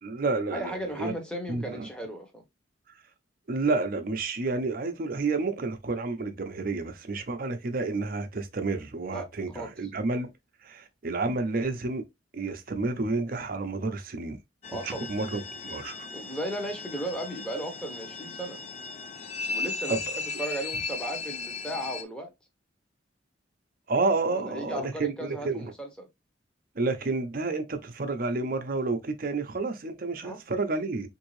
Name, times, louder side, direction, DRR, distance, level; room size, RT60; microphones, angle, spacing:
voice 1, 0.0-1.1 1.5-1.9 3.5-10.3 10.6-12.0 12.3-14.4 14.8-16.1 19.9-20.1 23.9-25.7 26.8-31.1, right 3 dB, 50° right, 0.6 m, -30 dB
voice 2, 0.5-2.4 9.1-9.3 9.5-9.7 14.7-15.1 16.1-18.6 19.5-22.3 24.3-26.1 30.2-30.4, right 1 dB, 5° left, 0.9 m, -36 dB
sound 1, 14.6-22.0, left 4 dB, 40° left, 0.4 m, -36 dB
3.6 x 2.6 x 3.1 m
head